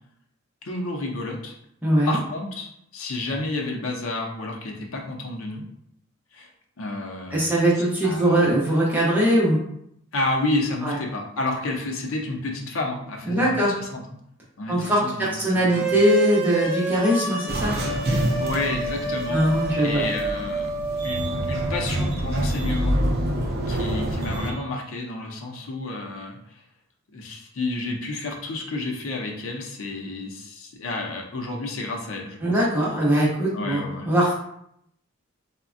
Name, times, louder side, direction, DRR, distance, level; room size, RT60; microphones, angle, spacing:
voice 1, 0.6-1.5 2.1-5.6 6.3-6.5 6.8-7.5 8.0-8.4 10.1-14.0 14.6-15.9 18.4-20.7 21.0-23.0 23.7-26.6 27.1-32.7 33.5-34.1, left 2 dB, 85° left, 1 dB, 0.6 m, -30 dB
voice 2, 1.8-2.2 7.3-9.6 10.8-11.0 13.3-13.7 14.7-17.7 19.3-20.1 32.4-34.3, equal, 10° right, -7 dB, 0.7 m, -21 dB
sound 1, 15.7-21.8, right 3 dB, 20° left, 1.1 m, -28 dB
sound 2, 17.5-24.5, right 1 dB, 50° right, 0.4 m, -27 dB
3.3 x 2.1 x 2.5 m, 0.74 s
head